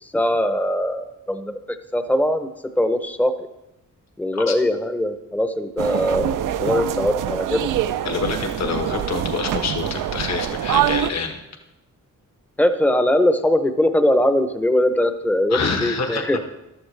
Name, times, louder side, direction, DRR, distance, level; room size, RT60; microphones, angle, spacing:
voice 1, 0.0-2.5 2.8-3.5 4.2-6.3 6.6-7.7 12.6-16.4, left 1 dB, 5° left, 8 dB, 0.7 m, -21 dB
sound 1, 5.8-11.1, right 10 dB, 80° right, 0.6 m, -24 dB
voice 2, 8.0-11.4 15.5-16.2, left 5 dB, 55° left, 4 dB, 1.4 m, -26 dB
14.5 x 12.0 x 3.3 m, 0.93 s
wide cardioid pair, 145°, 32 cm